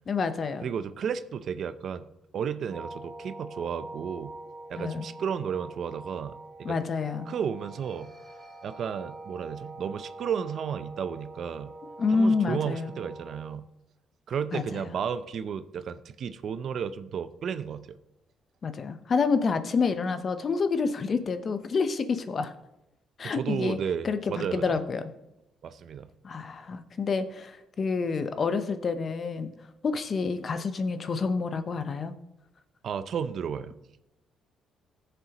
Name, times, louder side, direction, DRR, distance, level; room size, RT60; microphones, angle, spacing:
voice 1, 0.1-0.7 4.8-5.1 6.6-7.3 12.0-13.0 14.5-14.8 18.6-22.5 23.2-23.8 24.0-24.2 24.5-25.1 26.2-29.5 29.8-32.1, left 4 dB, 45° left, 10 dB, 0.8 m, -28 dB
voice 2, 0.6-2.1 2.3-4.3 4.7-6.8 7.3-8.1 8.6-11.7 12.1-13.7 14.3-18.0 23.2-24.6 25.6-26.1 32.8-33.7, right 7 dB, 60° right, 12 dB, 0.6 m, -33 dB
sound 1, 2.7-13.6, right 2 dB, 20° right, 2.3 m, -45 dB
16.0 x 6.9 x 3.0 m, 0.91 s
cardioid pair, 90°, 0 cm